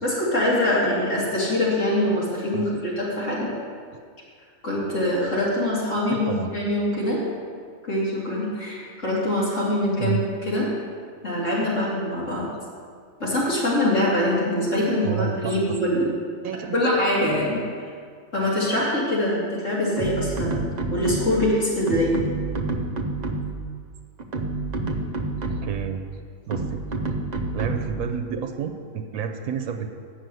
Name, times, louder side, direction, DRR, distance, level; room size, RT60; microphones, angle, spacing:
voice 1, 0.0-3.5 4.6-7.2 7.8-10.7 11.2-12.5 13.2-16.1 16.7-17.9 18.3-20.6 20.9-22.2, left 1 dB, 60° left, -7 dB, 3.1 m, -24 dB
voice 2, 6.1-6.5 10.0-10.2 15.0-15.8 16.4-16.8 25.5-26.0 26.5-26.8 27.5-29.9, right 7 dB, 85° right, 5 dB, 1.1 m, -30 dB
sound 1, 20.0-21.5 21.9-23.7 24.2-25.8 26.5-28.0, right 2 dB, 45° right, 0.6 m, -28 dB
8.0 x 6.5 x 7.7 m, 2.1 s
omnidirectional pair, 1.4 m